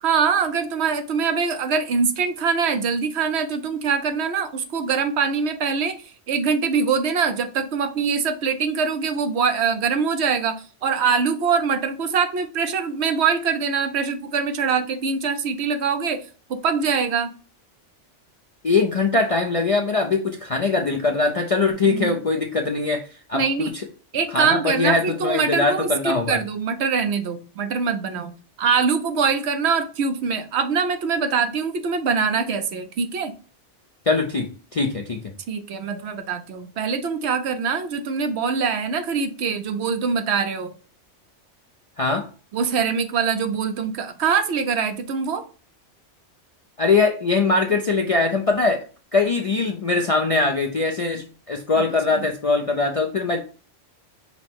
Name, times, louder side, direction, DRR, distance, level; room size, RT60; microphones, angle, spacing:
voice 1, 0.0-10.6 10.8-17.3 21.8-22.2 23.3-23.7 24.1-28.3 28.6-33.3 35.5-40.7 42.5-45.4, right 5 dB, 70° right, 8 dB, 0.9 m, -23 dB
voice 2, 18.6-23.0 23.3-23.8 24.3-26.4 34.1-35.3 42.0-42.2 46.8-48.8 49.1-53.4, left 3 dB, 50° left, 3 dB, 0.4 m, -22 dB
5.5 x 2.1 x 4.4 m, 0.38 s
omnidirectional pair, 1.2 m